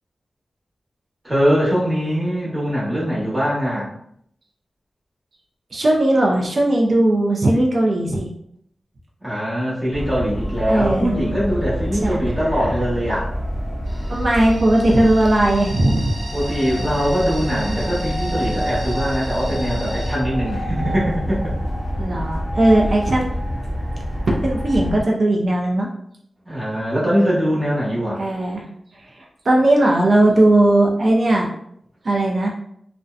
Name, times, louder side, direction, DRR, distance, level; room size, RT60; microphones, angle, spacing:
voice 1, 1.2-3.9 9.2-13.3 16.3-21.5 26.4-28.2, equal, 10° right, -7 dB, 1.0 m, -22 dB
voice 2, 5.7-8.3 10.7-11.1 12.0-12.2 12.5-12.8 14.1-16.2 22.0-23.3 24.3-25.9 28.2-28.7 28.9-31.5 32.0-32.5, right 1 dB, 50° right, -1 dB, 0.4 m, -18 dB
sound 1, 9.9-25.0, equal, 35° left, 0.8 m, -27 dB
sound 2, 13.8-20.2, right 1 dB, 70° right, 1.0 m, -37 dB
2.6 x 2.1 x 2.4 m, 0.69 s
wide cardioid pair, 155°, 0 cm